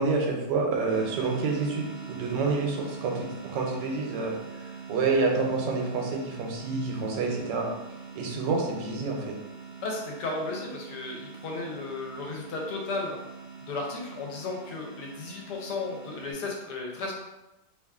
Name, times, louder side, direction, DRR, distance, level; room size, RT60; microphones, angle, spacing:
voice 1, 0.0-4.3 4.9-7.7 8.2-9.3, right 4 dB, 90° right, 0 dB, 1.2 m, -28 dB
sound 1, 0.9-16.3, right 5 dB, 30° left, 0.9 m, -43 dB
voice 2, 9.8-13.2 13.7-17.1, left 3 dB, 75° left, -1 dB, 1.1 m, -34 dB
2.8 x 2.4 x 2.3 m, 0.98 s
omnidirectional pair, 1.9 m